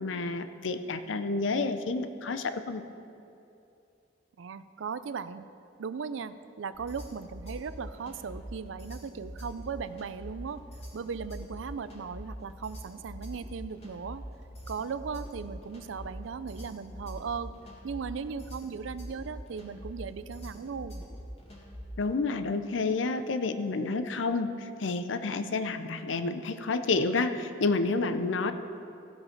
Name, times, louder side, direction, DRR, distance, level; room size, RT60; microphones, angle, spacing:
voice 1, 0.0-2.8 22.0-28.5, left 3 dB, 80° left, 10 dB, 0.6 m, -29 dB
voice 2, 4.4-5.5 5.8-10.6 10.9-14.2 14.7-17.5 17.8-21.0, right 5 dB, 85° right, 14 dB, 0.4 m, -37 dB
sound 1, 6.7-22.0, equal, 35° left, 2.1 m, -44 dB
15.5 x 5.5 x 5.9 m, 2.7 s
head